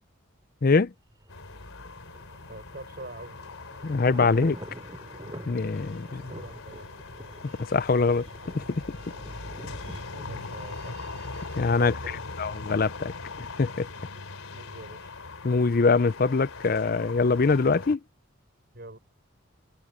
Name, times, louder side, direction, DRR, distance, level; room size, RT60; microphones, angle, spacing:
Thunder, 1.1-12.0 12.3-12.4, right 1 dB, 20° right, 2.8 m, -46 dB
sound 1, 1.3-18.0, left 3 dB, 85° left, 3.7 m, -41 dB
voice 1, 2.5-3.4 6.3-6.9 10.1-11.0 11.8-12.2 14.1-14.3 14.5-15.1 18.7-19.0, right 2 dB, 50° right, 6.7 m, -44 dB
voice 2, 3.8-4.6 5.5-6.2 7.7-8.3 8.5-8.6 11.6-11.9 12.4-13.9 15.4-18.0, left 4 dB, 45° left, 0.5 m, -23 dB
sound 2, 3.9-12.1, right 4 dB, 85° right, 7.9 m, -56 dB
open air
head